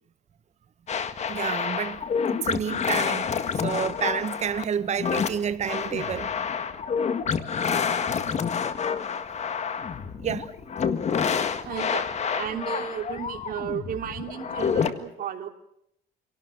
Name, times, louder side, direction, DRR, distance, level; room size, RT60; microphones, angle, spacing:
sound 1, 0.9-14.9, left 6 dB, 40° left, 1.8 m, -28 dB
voice 1, 1.3-2.0 2.3-3.3 3.6-6.3 10.2-10.5, right 7 dB, 40° right, 1.3 m, -29 dB
voice 2, 11.6-12.1 12.3-15.5, right 9 dB, 60° right, 3.1 m, -33 dB
26.5 x 18.5 x 7.9 m
cardioid pair, 110°, 17 cm